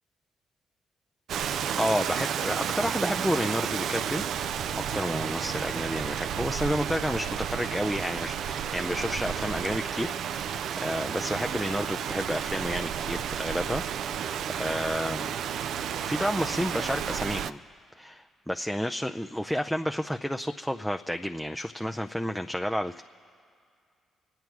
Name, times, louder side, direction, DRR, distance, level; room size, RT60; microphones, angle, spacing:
Rain, 1.3-17.5, right 8 dB, 70° right, 0.4 m, -32 dB
voice 1, 1.8-4.2 4.7-15.4 16.0-17.6 18.0-23.0, equal, ahead, 5 dB, 0.5 m, -31 dB
26.5 x 9.0 x 4.7 m, 2.3 s
hypercardioid pair, 45°, 0 cm